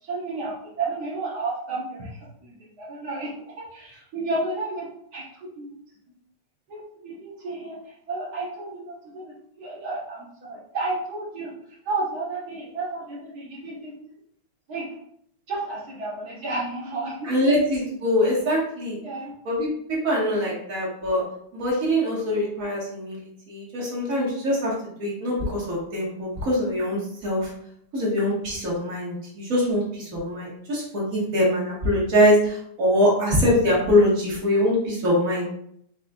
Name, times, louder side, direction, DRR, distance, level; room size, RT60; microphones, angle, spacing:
voice 1, 0.0-5.3 5.6-5.8 6.7-11.5 11.8-13.9 14.7-14.9 15.5-17.5 19.0-19.3, right 3 dB, 80° right, -6 dB, 0.8 m, -32 dB
voice 2, 17.2-19.0 19.4-21.2 21.5-24.7 25.0-27.5 27.9-35.5, left 1 dB, 40° right, -5 dB, 1.3 m, -23 dB
5.1 x 4.1 x 2.4 m, 0.68 s
omnidirectional pair, 3.4 m